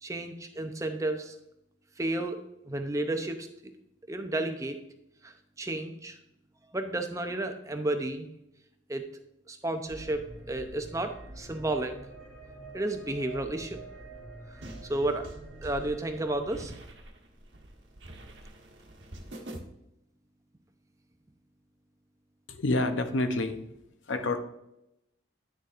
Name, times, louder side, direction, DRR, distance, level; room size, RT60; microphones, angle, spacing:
voice 1, 0.0-1.4 2.0-2.4 2.7-3.7 4.1-4.8 5.2-6.2 6.7-8.3 8.9-9.0 9.5-12.0 12.7-13.8 14.9-15.3 15.6-16.7, right 2 dB, 15° right, 6 dB, 0.6 m, -32 dB
sound 1, 9.9-16.7, right 2 dB, 5° left, 2.5 m, -46 dB
sound 2, 14.6-19.6, right 1 dB, 65° right, 1.2 m, -45 dB
voice 2, 22.5-23.6 24.1-24.4, left 2 dB, 75° left, 8 dB, 0.7 m, -28 dB
9.4 x 6.8 x 2.5 m, 0.85 s
head